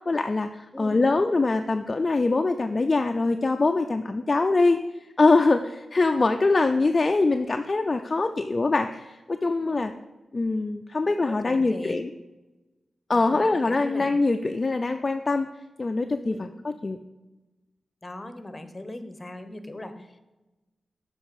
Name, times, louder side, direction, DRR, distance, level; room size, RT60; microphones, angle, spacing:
voice 1, 0.0-4.8 5.2-9.9 10.3-12.1 13.1-15.5 15.8-17.0, left 3 dB, 45° left, 6 dB, 0.4 m, -23 dB
voice 2, 11.2-12.0 13.1-14.1 16.2-16.4 18.0-20.2, left 1 dB, 25° left, 9 dB, 1.0 m, -38 dB
7.3 x 4.9 x 4.8 m, 1.1 s
cardioid pair, 45°, 0 cm